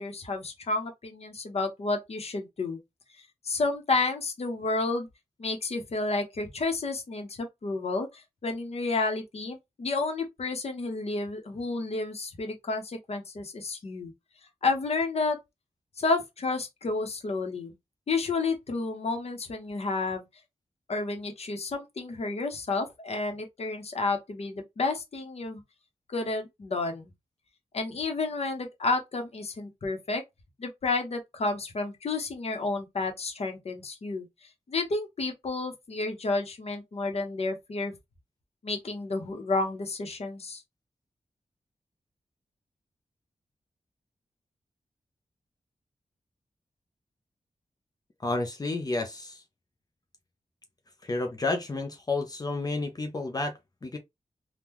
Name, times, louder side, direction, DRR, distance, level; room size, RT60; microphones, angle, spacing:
voice 1, 0.0-2.8 3.4-5.1 5.4-14.1 14.6-15.4 16.0-17.7 18.1-20.2 20.9-25.6 26.1-27.1 27.7-30.2 30.6-37.9 38.6-40.6, left 3 dB, 60° left, 1.0 m, -31 dB
voice 2, 48.2-49.4 51.0-54.0, left 2 dB, 30° left, 0.6 m, -31 dB
3.7 x 2.3 x 2.9 m
wide cardioid pair, 90°, 12 cm